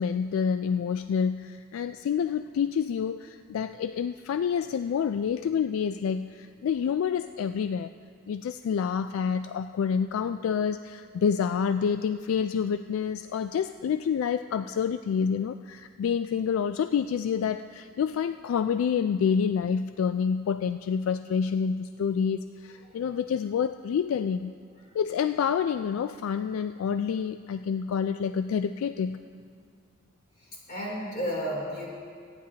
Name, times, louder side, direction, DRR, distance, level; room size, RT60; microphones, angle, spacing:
voice 1, 0.0-7.9 8.3-24.5 24.9-29.2, left 7 dB, 80° left, 11 dB, 0.3 m, -28 dB
voice 2, 30.4-31.9, equal, 45° left, -4 dB, 3.2 m, -33 dB
23.0 x 9.8 x 2.8 m, 2.1 s
head